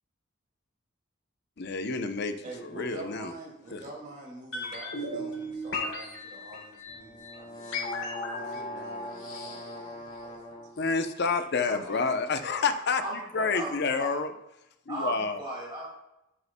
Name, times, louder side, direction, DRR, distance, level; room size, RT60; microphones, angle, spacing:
voice 1, 1.6-2.3 2.6-3.3 3.7-3.8 10.8-13.0 13.3-14.3 14.9-15.4, left 4 dB, 55° left, 9 dB, 0.6 m, -28 dB
voice 2, 2.4-7.8 8.3-10.6, right 1 dB, 40° right, -2 dB, 2.3 m, -46 dB
sound 1, 4.5-10.6 10.8-10.9, left 2 dB, 75° left, 2.3 m, -36 dB
sound 2, 6.9-10.8, equal, 35° left, 1.4 m, -43 dB
voice 3, 11.6-12.2 12.5-12.7 13.0-13.7 13.9-14.2 14.9-16.0, right 2 dB, 25° right, -4 dB, 2.2 m, -37 dB
9.7 x 8.4 x 2.2 m, 0.91 s
head